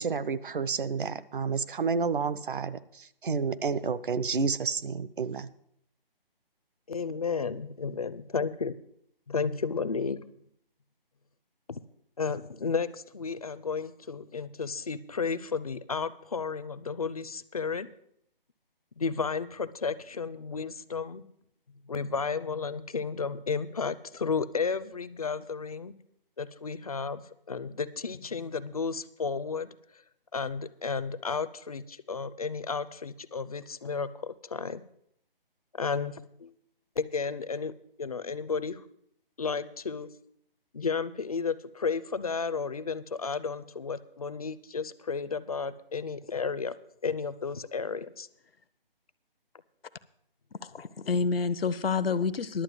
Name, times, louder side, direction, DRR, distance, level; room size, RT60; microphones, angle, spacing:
voice 1, 0.0-5.5, right 5 dB, 60° right, 14 dB, 0.7 m, -30 dB
voice 2, 6.9-8.7 9.3-10.3 11.7-11.8 12.2-17.9 19.0-21.2 21.9-25.9 26.4-27.2 27.5-29.7 30.3-34.8 35.8-36.5 37.0-37.7 38.0-38.8 39.4-40.1 40.7-46.8 47.0-48.3, left 5 dB, 40° left, 15 dB, 0.5 m, -33 dB
voice 3, 50.6-52.6, left 5 dB, 80° left, 14 dB, 0.8 m, -28 dB
11.0 x 7.6 x 7.7 m, 0.72 s
hypercardioid pair, 165°, 29 cm